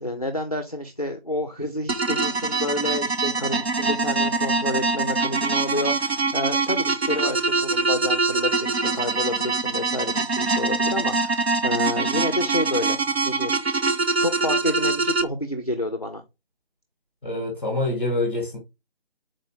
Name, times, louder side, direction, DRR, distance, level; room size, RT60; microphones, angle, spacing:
voice 1, 0.0-13.5 14.2-16.2, left 1 dB, 40° left, 0.4 m, -29 dB
sound 1, 1.9-15.2, right 3 dB, 80° right, 0.7 m, -24 dB
voice 2, 17.2-18.6, left 2 dB, 10° left, 0.9 m, -26 dB
3.9 x 2.4 x 3.1 m
figure-of-eight pair, 160°, 31 cm